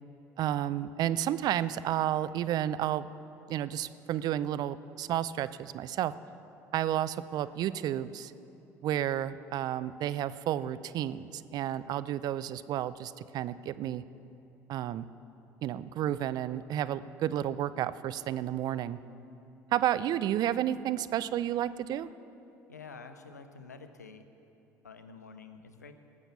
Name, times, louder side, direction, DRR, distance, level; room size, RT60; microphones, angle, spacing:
voice 1, 0.4-3.1 3.5-6.1 6.7-8.3 8.8-14.0 14.7-15.1 15.6-19.0 19.7-22.1, right 11 dB, 50° right, 15 dB, 0.5 m, -31 dB
voice 2, 22.7-24.2 24.8-25.9, left 4 dB, 90° left, 9 dB, 0.7 m, -48 dB
18.5 x 7.1 x 7.0 m, 2.9 s
hypercardioid pair, 65°, 9 cm